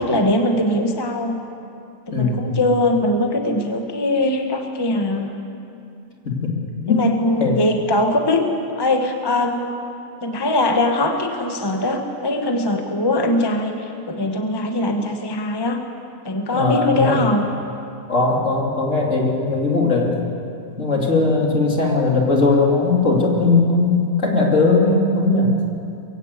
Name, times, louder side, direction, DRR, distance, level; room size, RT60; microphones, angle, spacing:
voice 1, 0.0-1.4 2.1-5.3 6.9-9.7 10.2-15.8 16.2-17.4, left 1 dB, 20° left, 4 dB, 1.1 m, -21 dB
voice 2, 2.1-2.5 6.2-6.5 6.8-7.0 7.4-7.6 16.5-17.2 18.1-20.2 20.8-25.5, left 3 dB, 60° left, -1 dB, 3.0 m, -18 dB
23.0 x 16.0 x 8.1 m, 2.6 s
omnidirectional pair, 1.5 m